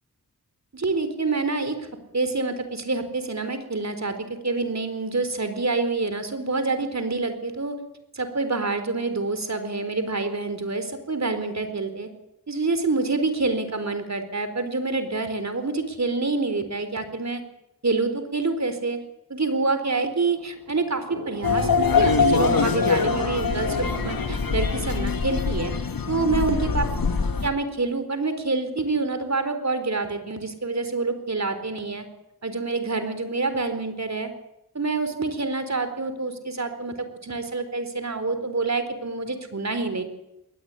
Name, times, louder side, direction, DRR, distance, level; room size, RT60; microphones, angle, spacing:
voice 1, 0.7-1.9 2.1-7.8 8.1-12.1 12.5-17.4 17.8-19.0 19.3-25.7 26.1-26.8 27.4-32.0 32.4-34.3 34.7-40.0, right 3 dB, 45° right, 9 dB, 4.1 m, -27 dB
sound 1, 19.8-25.0, right 4 dB, 70° right, 3.0 m, -43 dB
sound 2, 21.4-27.5, left 5 dB, 70° left, 2.1 m, -23 dB
21.0 x 18.5 x 9.8 m, 0.90 s
cardioid pair, 55°, 36 cm